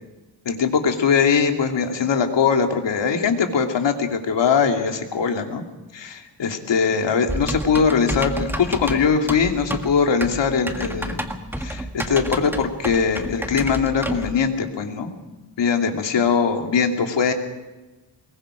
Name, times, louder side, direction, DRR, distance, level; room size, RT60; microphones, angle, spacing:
voice 1, 0.4-5.6 5.9-11.2 11.6-15.1 15.6-17.3, left 6 dB, 90° left, 4 dB, 2.7 m, -21 dB
Typing, 7.3-14.3, right 1 dB, 5° right, 1.8 m, -29 dB
24.5 x 22.0 x 5.1 m, 1.2 s
wide cardioid pair, 120°, 42 cm